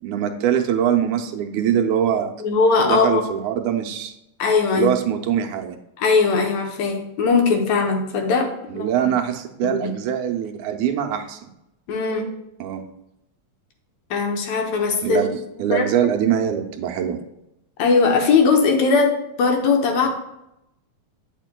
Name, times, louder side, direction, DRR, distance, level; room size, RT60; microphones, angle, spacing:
voice 1, 0.0-2.3 2.9-4.1 4.7-5.8 8.7-11.4 12.6-12.8 15.0-17.2, right 9 dB, 80° right, 4 dB, 2.1 m, -23 dB
voice 2, 2.4-3.2 4.4-4.9 6.0-8.9 9.6-9.9 11.9-12.3 14.1-15.2 15.7-15.9 17.8-20.1, left 4 dB, 70° left, 3 dB, 2.0 m, -19 dB
9.1 x 6.6 x 2.2 m, 0.86 s
omnidirectional pair, 3.4 m